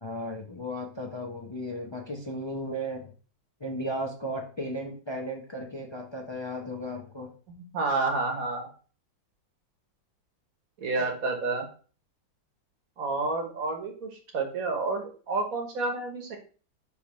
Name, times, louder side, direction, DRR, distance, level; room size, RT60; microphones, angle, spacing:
voice 1, 0.0-3.1 3.6-7.3 11.0-11.1, equal, 40° left, 0 dB, 0.3 m, -35 dB
voice 2, 7.7-8.7 10.8-11.7 13.0-16.4, right 3 dB, 55° right, 4 dB, 1.4 m, -29 dB
9.6 x 3.5 x 3.1 m, 0.39 s
omnidirectional pair, 2.0 m